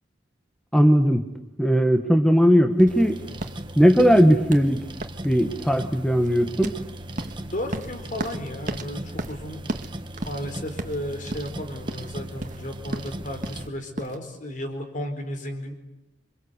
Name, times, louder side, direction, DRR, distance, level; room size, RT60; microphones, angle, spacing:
voice 1, 0.7-1.2 1.6-3.2 3.8-4.9 5.2-6.8, equal, 5° left, 4 dB, 1.4 m, -18 dB
sound 1, 2.8-14.2, right 1 dB, 45° right, 1.7 m, -36 dB
sound 2, 2.9-13.7, right 1 dB, 25° right, 1.4 m, -38 dB
voice 2, 7.4-9.6 10.2-15.9, left 1 dB, 45° left, 6 dB, 4.5 m, -34 dB
27.5 x 24.5 x 8.3 m, 0.93 s
head